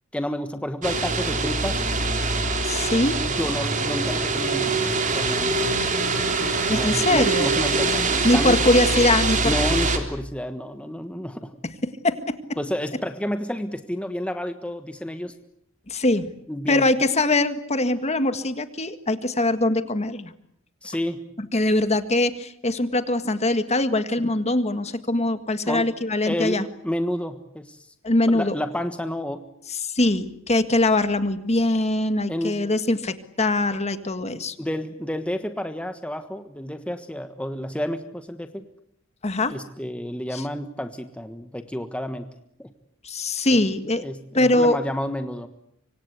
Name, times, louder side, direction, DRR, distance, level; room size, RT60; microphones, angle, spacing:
voice 1, 0.1-1.8 3.1-5.7 6.1-8.6 9.4-11.6 12.6-15.3 16.5-16.9 20.8-21.2 25.6-25.8 26.2-27.9 28.3-29.4 32.3-32.6 34.6-38.6 39.5-42.3 42.6-42.7 43.5-43.6 44.0-45.5, left 1 dB, 5° left, 8 dB, 1.4 m, -30 dB
sound 1, 0.8-10.0, right 3 dB, 40° right, 3.5 m, -23 dB
voice 2, 2.6-3.2 6.7-7.5 8.2-9.5 11.6-11.7 12.0-12.4 15.9-16.3 16.7-20.3 21.4-26.6 28.0-28.6 29.7-34.5 39.2-39.5 40.3-40.4 43.0-44.0 44.3-44.8, left 2 dB, 30° left, 10 dB, 1.7 m, -22 dB
25.5 x 25.0 x 8.2 m, 0.71 s
head